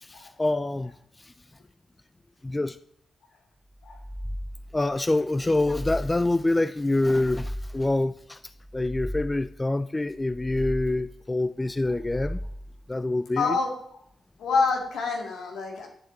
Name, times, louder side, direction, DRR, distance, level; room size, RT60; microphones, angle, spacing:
voice 1, 0.0-0.9 1.2-1.3 2.4-2.8 4.7-8.4 8.7-12.4 12.9-13.6, left 2 dB, 25° left, 0.4 m, -26 dB
sound 1, 3.8-4.9 5.3-6.5 6.9-8.0 8.5-9.6 10.1-11.2 11.8-12.9, equal, 25° right, 1.7 m, -37 dB
voice 2, 13.4-14.0 14.4-15.9, left 4 dB, 80° left, 2.1 m, -27 dB
11.5 x 7.4 x 3.9 m
supercardioid pair, 45°, 0 cm